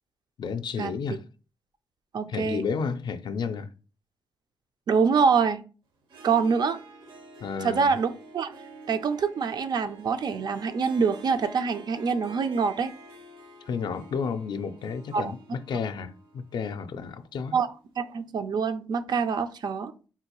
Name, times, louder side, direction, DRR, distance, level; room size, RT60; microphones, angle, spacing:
voice 1, 0.4-1.2 2.3-3.7 7.4-7.9 13.7-17.6, left 5 dB, 60° left, 0.3 m, -32 dB
voice 2, 2.1-2.6 4.9-5.6 6.2-6.8 7.6-8.5 8.9-12.9 15.1-15.3 17.5-17.7 18.0-19.9, right 5 dB, 55° right, 0.4 m, -25 dB
Harp, 6.0-17.9, right 2 dB, 75° right, 0.7 m, -48 dB
3.6 x 2.3 x 2.9 m
cardioid pair, 85°, 9 cm